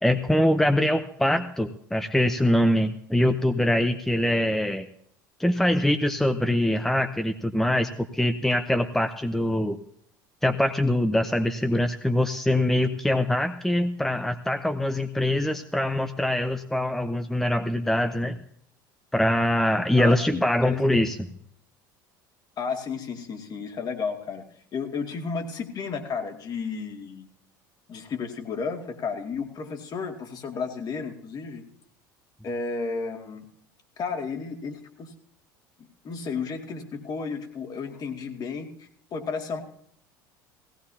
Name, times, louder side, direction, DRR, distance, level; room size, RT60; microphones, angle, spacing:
voice 1, 0.0-4.9 5.4-9.8 10.4-18.4 19.1-21.2, left 1 dB, 5° left, 9 dB, 0.8 m, -23 dB
voice 2, 20.0-21.0 22.6-24.5 24.7-27.3 27.9-31.6 32.4-33.5 34.0-35.1 36.0-39.6, left 5 dB, 40° left, 4 dB, 2.3 m, -33 dB
18.5 x 17.0 x 2.8 m, 0.67 s
figure-of-eight pair, 70°, 11 cm